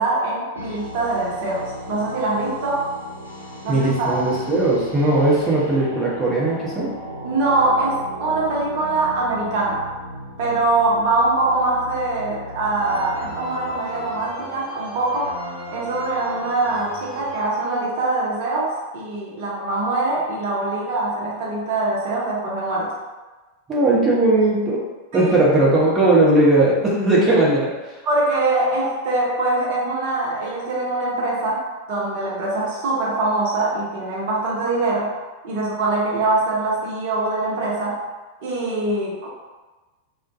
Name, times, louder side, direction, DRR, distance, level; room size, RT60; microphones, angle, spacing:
voice 1, 0.0-2.9 3.6-4.2 7.2-9.9 10.4-15.4 15.7-23.0 25.1-25.3 28.0-35.1 35.4-38.0 38.4-39.3, right 2 dB, 50° right, -5 dB, 0.7 m, -23 dB
sound 1, 0.6-14.6, equal, 85° left, 0.4 m, -36 dB
voice 2, 3.7-6.9 23.7-24.8 25.1-27.7, right 2 dB, 20° right, -6 dB, 0.8 m, -18 dB
sound 2, 12.8-18.0, right 1 dB, 45° left, 0.6 m, -36 dB
2.2 x 2.1 x 2.6 m, 1.2 s
figure-of-eight pair, 90°, 0 cm